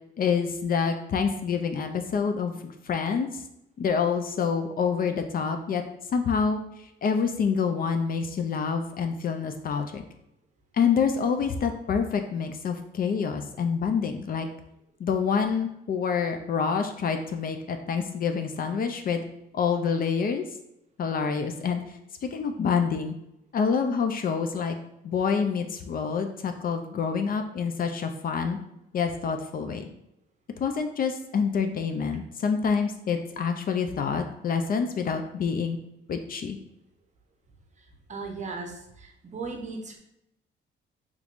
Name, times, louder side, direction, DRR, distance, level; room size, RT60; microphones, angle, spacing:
voice 1, 0.2-3.3 3.8-5.8 6.1-6.6 7.0-10.0 10.7-14.5 15.0-19.2 19.5-20.4 21.0-23.1 23.5-24.8 25.0-28.6 28.9-29.9 30.6-35.8 36.1-36.6, left 6 dB, 45° left, 6 dB, 0.4 m, -27 dB
voice 2, 37.8-40.0, right 4 dB, 35° right, 2 dB, 0.7 m, -37 dB
3.4 x 3.1 x 2.4 m, 0.82 s
cardioid pair, 90°, 20 cm